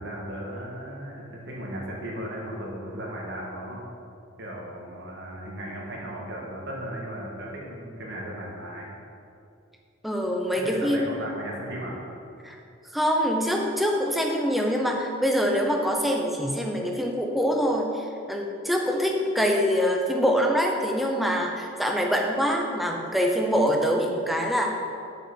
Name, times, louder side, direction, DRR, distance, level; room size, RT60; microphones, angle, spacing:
voice 1, 0.0-3.8 4.4-8.9 10.6-12.0, right 1 dB, 55° right, -3 dB, 1.9 m, -36 dB
voice 2, 10.0-11.2 12.4-12.6 12.9-24.7, equal, ahead, 0 dB, 0.8 m, -24 dB
7.9 x 5.7 x 6.3 m, 2.5 s
head